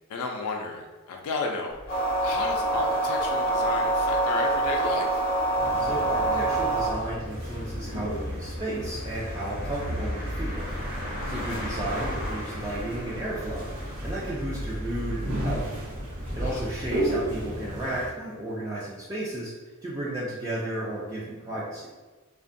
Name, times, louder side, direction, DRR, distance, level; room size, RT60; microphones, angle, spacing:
voice 1, 0.1-5.3 11.3-11.7 16.3-16.7, left 4 dB, 85° left, 1 dB, 0.4 m, -33 dB
sound 1, 1.7-17.2, equal, 45° right, 1.0 m, -37 dB
sound 2, 1.9-6.9, right 2 dB, 40° left, 0.6 m, -25 dB
sound 3, 5.6-18.1, equal, 65° right, 0.7 m, -35 dB
voice 2, 5.8-10.6 11.3-13.6 14.0-15.6 16.3-19.5 19.8-21.9, right 1 dB, 15° right, -7 dB, 0.3 m, -33 dB
2.4 x 2.2 x 2.5 m, 1.3 s
head